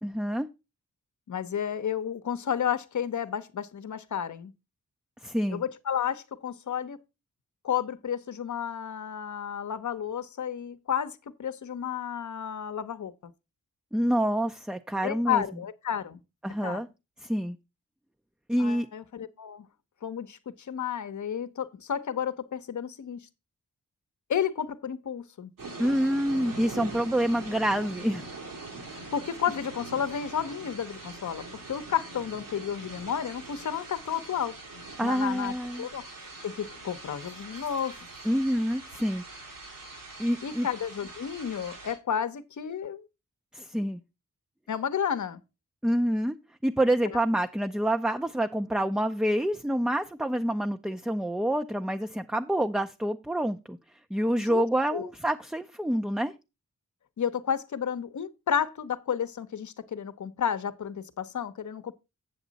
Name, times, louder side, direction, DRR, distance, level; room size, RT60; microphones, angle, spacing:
voice 1, 0.0-0.5 5.2-5.6 13.9-15.4 16.4-16.9 17.2-17.6 18.5-18.9 25.8-28.3 35.0-35.9 38.3-39.2 40.2-40.7 43.5-44.0 45.8-46.4 46.6-53.8 54.1-56.3, right 1 dB, ahead, 0.4 m, -27 dB
voice 2, 1.3-4.5 5.5-7.0 7.6-13.3 15.0-16.2 16.6-16.8 18.6-19.7 20.0-23.2 24.3-25.5 29.1-34.6 35.0-38.0 40.4-43.0 44.7-45.4 47.0-47.2 54.4-54.6 54.9-55.1 57.2-61.9, left 8 dB, 65° left, 0.8 m, -32 dB
sound 1, 25.6-41.9, right 3 dB, 90° right, 2.8 m, -43 dB
8.0 x 7.3 x 4.0 m
cardioid pair, 65°, 32 cm